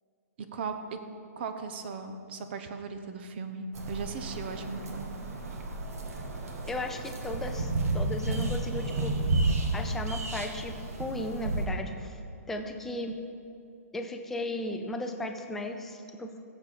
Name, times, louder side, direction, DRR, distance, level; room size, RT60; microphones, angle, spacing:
voice 1, 0.4-1.0 1.4-5.1, right 5 dB, 40° right, 8 dB, 0.7 m, -37 dB
sound 1, 3.7-11.7, right 2 dB, 65° right, 1.5 m, -32 dB
voice 2, 6.7-9.1 9.7-10.7 11.0-12.2 12.5-13.1 13.9-16.4, left 1 dB, 5° left, 4 dB, 0.4 m, -35 dB
15.5 x 7.1 x 4.2 m, 2.5 s
hypercardioid pair, 165°, 9 cm